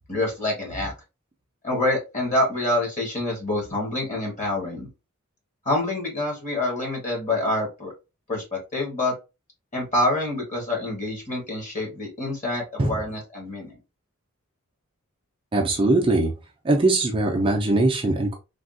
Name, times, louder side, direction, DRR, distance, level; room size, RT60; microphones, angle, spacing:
voice 1, 0.1-0.9 1.6-4.9 5.6-7.9 8.3-9.1 9.7-13.7, left 2 dB, 35° left, -1 dB, 1.2 m, -26 dB
voice 2, 15.5-16.3 16.6-18.3, right 2 dB, 25° right, 1 dB, 0.4 m, -21 dB
3.4 x 2.3 x 2.4 m, 0.27 s
head